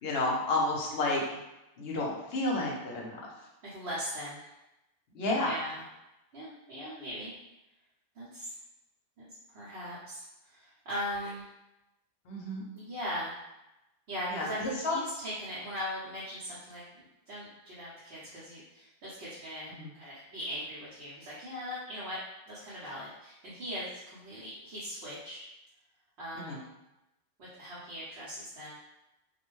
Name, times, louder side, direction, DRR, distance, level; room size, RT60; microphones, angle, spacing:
voice 1, 0.0-1.4 1.8-3.2 5.1-5.6 12.2-12.6 14.3-15.0 19.7-19.9 26.4-26.6, left 2 dB, 60° left, -2 dB, 0.8 m, -31 dB
voice 2, 3.6-4.5 5.4-5.8 6.3-7.3 8.1-8.5 9.5-11.5 12.7-13.4 14.1-22.2 22.5-25.4 26.2-26.7 27.4-28.8, equal, 65° right, -9 dB, 1.0 m, -40 dB
2.4 x 2.1 x 3.0 m, 0.94 s
omnidirectional pair, 1.3 m